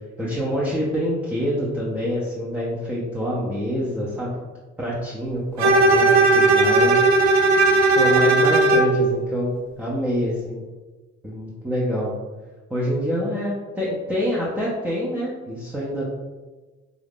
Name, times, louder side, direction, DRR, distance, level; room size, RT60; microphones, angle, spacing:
voice 1, 0.2-4.4 4.8-7.0 7.8-10.6 11.2-12.1 12.7-16.2, equal, 5° right, -6 dB, 0.7 m, -26 dB
Bowed string instrument, 5.6-9.0, right 2 dB, 65° right, 0.5 m, -16 dB
3.0 x 2.4 x 3.5 m, 1.2 s
cardioid pair, 90°, 30 cm